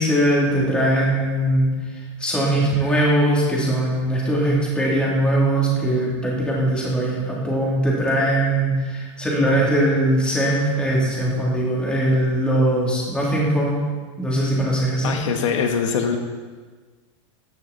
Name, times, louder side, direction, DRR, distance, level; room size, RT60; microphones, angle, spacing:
voice 1, 0.0-1.7 2.2-13.8 14.2-15.1, right 1 dB, 5° left, -4 dB, 3.1 m, -20 dB
voice 2, 15.0-16.2, left 6 dB, 75° left, 4 dB, 1.7 m, -22 dB
15.5 x 11.0 x 4.3 m, 1.4 s
supercardioid pair, 160°, 16 cm